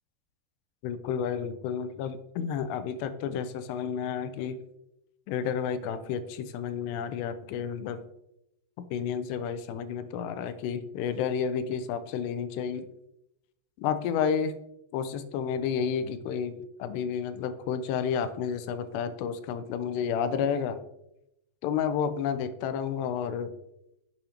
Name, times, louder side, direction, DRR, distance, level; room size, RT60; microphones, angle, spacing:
voice 1, 0.8-4.6 5.3-8.0 8.8-12.8 13.8-14.6 14.9-20.8 21.6-23.5, left 7 dB, 85° left, 11 dB, 2.7 m, -31 dB
10.5 x 7.6 x 2.9 m, 0.85 s
omnidirectional pair, 4.8 m